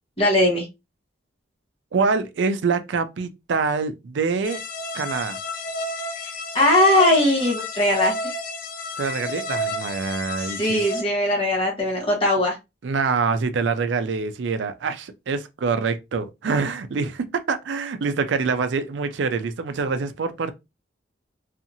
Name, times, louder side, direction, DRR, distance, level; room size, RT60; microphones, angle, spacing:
voice 1, 0.2-0.7 6.5-8.1 10.4-12.6, left 1 dB, 30° left, 1.1 m, -19 dB
voice 2, 1.9-4.6 4.9-5.4 9.0-10.9 12.8-20.5, right 4 dB, 75° right, 0.4 m, -25 dB
sound 1, 4.4-11.0, left 1 dB, 45° left, 0.4 m, -31 dB
2.7 x 2.4 x 2.6 m
head